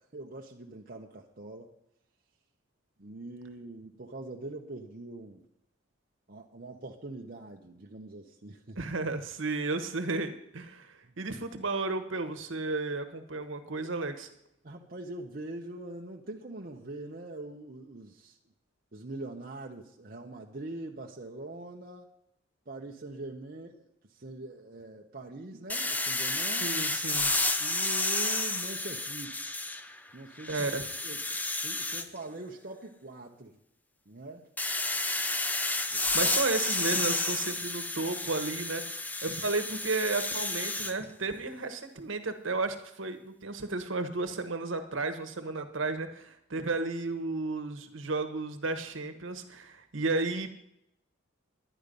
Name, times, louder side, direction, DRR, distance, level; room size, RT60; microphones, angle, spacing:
voice 1, 0.1-1.7 3.0-5.4 6.3-8.8 11.0-11.1 14.6-18.4 18.9-22.1 22.7-26.7 27.6-29.4 30.1-30.7 31.0-33.6 34.1-34.5 35.9-36.4, right 2 dB, 45° right, 0 dB, 0.8 m, -43 dB
voice 2, 8.8-14.3 26.6-27.3 30.5-30.8 36.1-50.5, right 3 dB, 70° right, 8 dB, 1.2 m, -33 dB
sound 1, 25.7-30.0 30.4-32.1 34.6-40.9, left 2 dB, 10° left, 0.4 m, -31 dB
11.0 x 10.0 x 5.3 m, 0.79 s
head